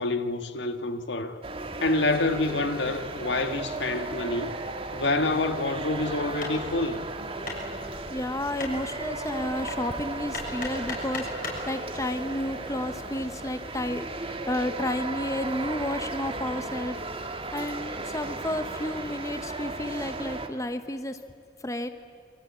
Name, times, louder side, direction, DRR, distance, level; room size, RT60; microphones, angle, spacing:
voice 1, 0.0-1.4 1.8-4.6 4.9-7.0, left 2 dB, 70° left, 1.7 m, -27 dB
sound 1, 1.4-20.5, right 2 dB, 30° right, 1.8 m, -35 dB
Hammer, 6.4-11.7, left 3 dB, 50° left, 6.6 m, -39 dB
voice 2, 8.1-21.2 21.6-21.9, left 1 dB, 15° left, 0.9 m, -32 dB
28.0 x 24.5 x 8.6 m
head